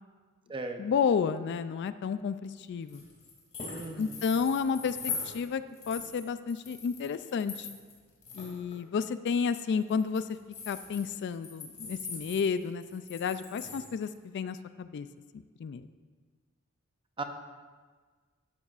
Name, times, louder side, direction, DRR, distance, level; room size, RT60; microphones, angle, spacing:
voice 1, 0.8-3.0 4.0-7.7 8.3-10.2 10.7-15.1 15.6-15.9, left 6 dB, 55° left, 12 dB, 0.3 m, -31 dB
sound 1, 2.9-5.4 5.7-7.9 8.2-8.8 9.8-14.1, left 4 dB, 30° left, 2.5 m, -41 dB
voice 2, 3.7-4.2 17.2-17.3, right 3 dB, 25° right, 5 dB, 0.7 m, -37 dB
12.5 x 10.5 x 2.5 m, 1.5 s
head